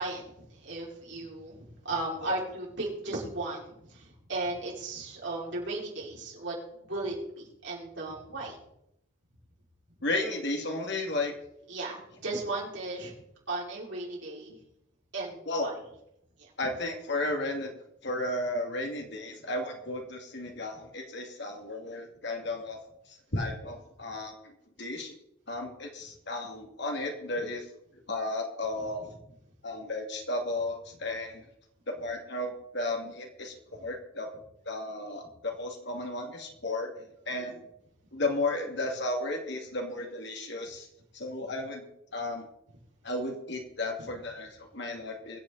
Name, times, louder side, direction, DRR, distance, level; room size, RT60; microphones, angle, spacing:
voice 1, 0.0-8.6 11.7-13.1 13.5-14.6 15.1-15.7 16.4-16.5 29.0-29.1 37.3-37.6, right 2 dB, 60° right, -4 dB, 5.7 m, -36 dB
voice 2, 10.0-11.3 15.5-15.7 16.6-17.7 18.0-22.8 23.1-24.5 24.8-25.2 25.5-27.7 28.1-29.0 29.6-31.4 31.9-34.3 34.7-37.6 38.1-40.9 41.1-42.5 43.0-45.4, left 2 dB, 55° left, 2 dB, 2.6 m, -34 dB
23.0 x 8.5 x 4.2 m, 0.79 s
head